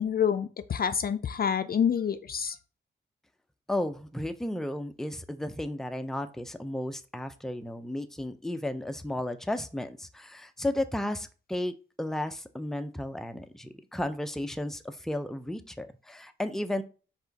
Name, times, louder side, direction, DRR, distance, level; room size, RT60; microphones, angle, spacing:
voice 1, 0.0-2.6, left 8 dB, 50° left, 11 dB, 0.4 m, -27 dB
voice 2, 3.7-16.8, left 1 dB, ahead, 8 dB, 0.5 m, -34 dB
4.7 x 3.9 x 2.8 m, 0.35 s
cardioid pair, 55°, 20 cm